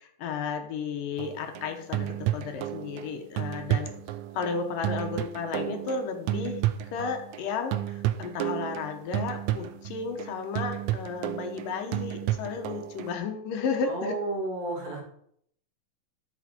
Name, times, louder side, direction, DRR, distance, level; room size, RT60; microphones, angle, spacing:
voice 1, 0.0-3.9 4.3-6.6 6.9-14.1, left 5 dB, 75° left, 5 dB, 2.7 m, -33 dB
sound 1, 1.2-7.5 7.7-13.1, right 13 dB, 85° right, 1.6 m, -32 dB
voice 2, 13.8-15.0, right 2 dB, 50° right, -1 dB, 2.9 m, -32 dB
13.0 x 6.2 x 4.4 m, 0.68 s
omnidirectional pair, 4.0 m